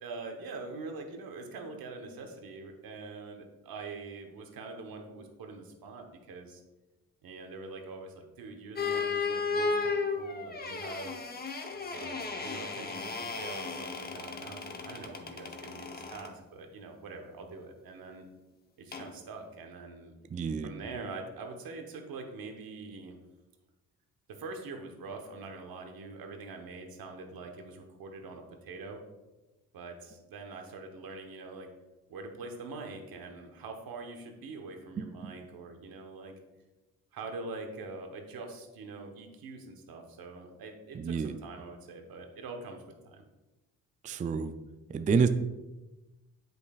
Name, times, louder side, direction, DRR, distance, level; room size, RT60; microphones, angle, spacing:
voice 1, 0.0-6.6 7.2-11.1 11.9-18.3 18.8-20.1 20.6-23.2 24.3-29.0 29.7-31.7 32.1-36.3 37.1-43.2, right 3 dB, 80° right, 3 dB, 1.1 m, -44 dB
sound 1, 8.8-16.3 18.9-19.1, left 4 dB, 25° left, 0.8 m, -34 dB
voice 2, 20.3-20.7 35.0-35.3 40.9-41.3 44.0-44.5 44.9-45.3, right 5 dB, 25° right, 10 dB, 0.3 m, -29 dB
8.0 x 5.2 x 2.4 m, 1.1 s
cardioid pair, 80°, 35 cm